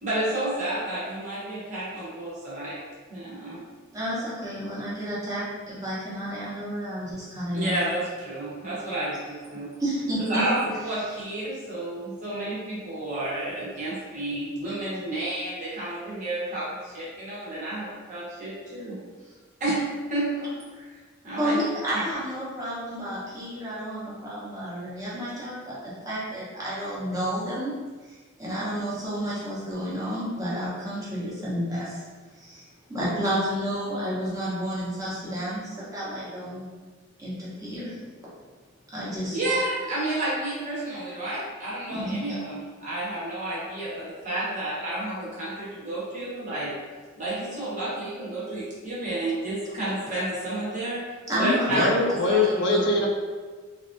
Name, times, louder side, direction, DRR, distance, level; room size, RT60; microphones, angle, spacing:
voice 1, 0.0-2.8 3.1-3.6 7.5-9.7 10.2-19.0 19.2-19.3 19.6-20.9 21.2-21.6 39.3-46.7 47.2-51.0 51.3-52.8, right 1 dB, 40° right, -8 dB, 1.1 m, -31 dB
voice 2, 3.9-7.8 9.8-10.4 21.4-27.8 28.0-32.0 32.3-36.7 37.2-38.0 38.9-39.4 41.9-42.4 51.3-51.9 52.2-52.8, equal, 15° right, -9 dB, 0.8 m, -31 dB
voice 3, 51.7-53.1, left 2 dB, 60° left, -1 dB, 0.5 m, -22 dB
3.3 x 2.4 x 2.5 m, 1.5 s
head